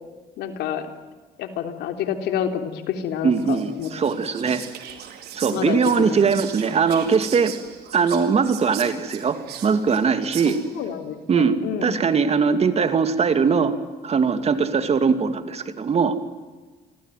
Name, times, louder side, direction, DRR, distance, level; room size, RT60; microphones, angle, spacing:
voice 1, 0.4-0.9 1.4-3.9 5.5-6.2 10.7-11.9, left 9 dB, 80° left, 6 dB, 3.6 m, -28 dB
voice 2, 3.2-4.6 5.3-7.5 7.9-10.6 11.3-11.6 11.8-13.7 14.0-16.2, right 5 dB, 40° right, 9 dB, 2.7 m, -21 dB
Whispering, 3.3-10.9, right 10 dB, 70° right, 4.4 m, -39 dB
28.5 x 21.5 x 9.4 m, 1.3 s
cardioid pair, 110°, 17 cm